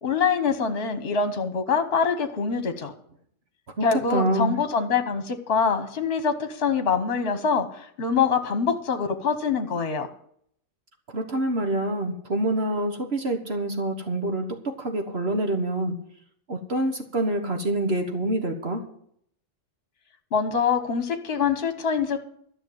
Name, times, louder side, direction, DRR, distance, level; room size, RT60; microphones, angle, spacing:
voice 1, 0.0-2.9 3.8-10.1 20.3-22.2, left 6 dB, 50° left, 8 dB, 1.3 m, -24 dB
voice 2, 3.8-4.6 11.1-16.0 16.5-18.8, right 1 dB, 50° right, 4 dB, 1.6 m, -26 dB
13.5 x 6.6 x 9.3 m, 0.67 s
omnidirectional pair, 1.4 m